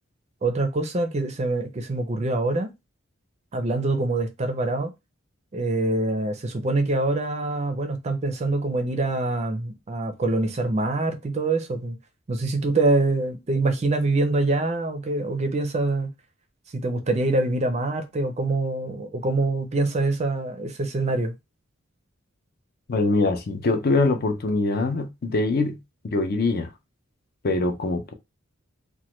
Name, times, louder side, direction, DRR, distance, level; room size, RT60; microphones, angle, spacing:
voice 1, 0.4-2.7 3.5-4.9 5.5-12.0 12.3-16.1 16.7-21.3, right 2 dB, 35° right, 0.5 m, -25 dB
voice 2, 22.9-25.8 26.1-26.7 27.4-28.1, left 3 dB, 50° left, 0.5 m, -23 dB
3.1 x 2.1 x 3.0 m
head